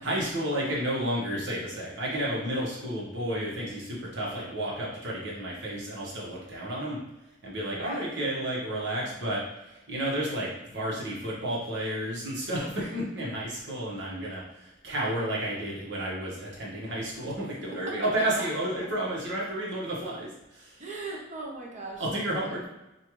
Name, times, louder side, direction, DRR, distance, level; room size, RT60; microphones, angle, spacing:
voice 1, 0.0-7.0 7.4-20.8 22.0-22.7, right 1 dB, 65° right, -5 dB, 1.4 m, -31 dB
voice 2, 7.7-8.1 17.9-18.0 20.8-22.7, right 3 dB, 40° right, -2 dB, 0.9 m, -39 dB
5.5 x 2.5 x 3.1 m, 0.97 s
head